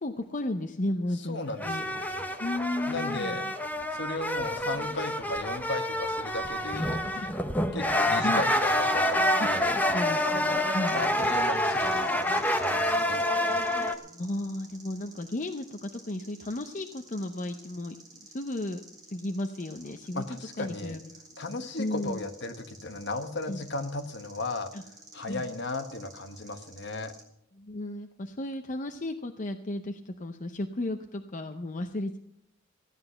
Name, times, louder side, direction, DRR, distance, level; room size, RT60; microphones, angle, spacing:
voice 1, 0.0-1.8 2.4-3.4 6.9-7.3 7.6-7.8 8.2-8.4 9.9-11.1 14.0-17.9 18.2-18.8 19.1-20.2 20.6-21.1 21.8-22.2 23.5-23.6 24.7-24.8 25.3-25.4 27.6-32.2, left 1 dB, 40° left, 5 dB, 0.7 m, -34 dB
voice 2, 1.3-2.0 2.9-3.5 3.9-7.0 7.7-9.8 10.9-13.2 20.1-21.0 21.4-24.7 25.1-27.1, left 2 dB, 60° left, 6 dB, 1.4 m, -36 dB
sound 1, 1.6-14.0, left 1 dB, 10° left, 0.8 m, -27 dB
sound 2, 10.9-27.2, right 2 dB, 20° right, 3.8 m, -52 dB
16.0 x 9.9 x 5.7 m, 0.80 s
head